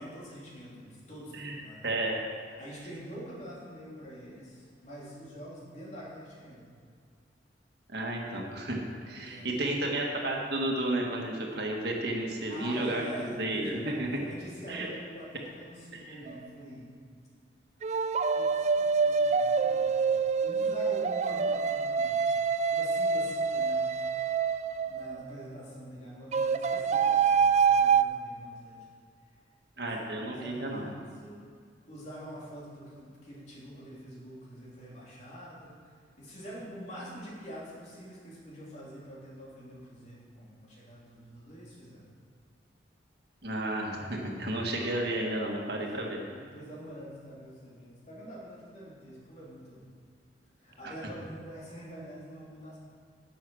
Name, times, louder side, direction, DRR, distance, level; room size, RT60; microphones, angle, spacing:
voice 1, 0.0-2.0 2.6-6.7 9.1-9.9 12.5-16.9 18.3-22.3 22.7-23.9 24.9-28.8 29.8-31.4 31.9-42.0 45.8-49.8 50.6-52.8, equal, 40° left, -6 dB, 3.1 m, -46 dB
voice 2, 1.3-2.2 7.9-8.8 9.0-14.1 14.7-14.9 15.9-16.2 29.8-30.9 43.4-46.2 50.8-50.9, right 1 dB, 60° right, 0 dB, 1.7 m, -32 dB
sound 1, 16.3-16.5 17.8-25.2 26.3-28.0, right 5 dB, 40° right, 0.3 m, -26 dB
11.5 x 7.0 x 6.3 m, 2.1 s
head